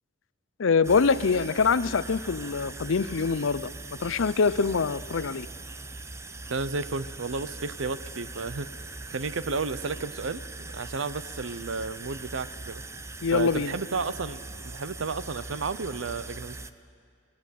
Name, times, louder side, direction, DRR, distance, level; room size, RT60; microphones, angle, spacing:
voice 1, 0.6-3.7 4.0-5.5 13.2-13.7, left 5 dB, 85° left, 16 dB, 0.6 m, -24 dB
sound 1, 0.8-16.7, right 3 dB, 15° right, 0.6 m, -41 dB
voice 2, 6.5-8.7 9.1-12.8 13.3-16.6, right 4 dB, 80° right, 14 dB, 0.8 m, -32 dB
26.0 x 17.0 x 8.5 m, 2.3 s
head